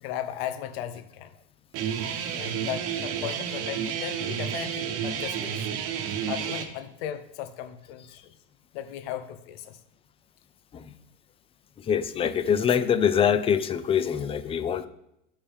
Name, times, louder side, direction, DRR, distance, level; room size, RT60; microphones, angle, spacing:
voice 1, 0.0-1.3 2.4-5.6 6.3-8.3 8.7-9.8, left 11 dB, 70° left, 10 dB, 0.9 m, -36 dB
Guitar, 1.7-6.6, right 8 dB, 45° right, 1.1 m, -31 dB
voice 2, 11.8-14.9, left 8 dB, 20° left, 13 dB, 0.4 m, -24 dB
11.5 x 5.5 x 3.5 m, 0.82 s
supercardioid pair, 130°, 31 cm